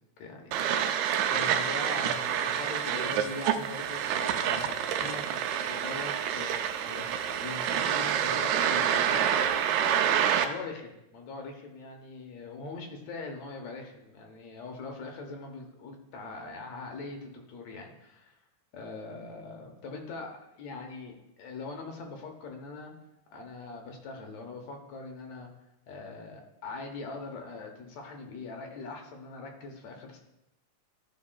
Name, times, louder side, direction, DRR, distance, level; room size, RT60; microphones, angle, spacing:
voice 1, 0.2-9.7 10.4-18.4 18.7-22.9 23.3-25.5 25.9-30.2, left 3 dB, 70° left, 2 dB, 2.0 m, -42 dB
sound 1, 0.5-10.4, right 9 dB, 80° right, 1.8 m, -28 dB
12.5 x 5.3 x 2.2 m, 0.88 s
omnidirectional pair, 3.6 m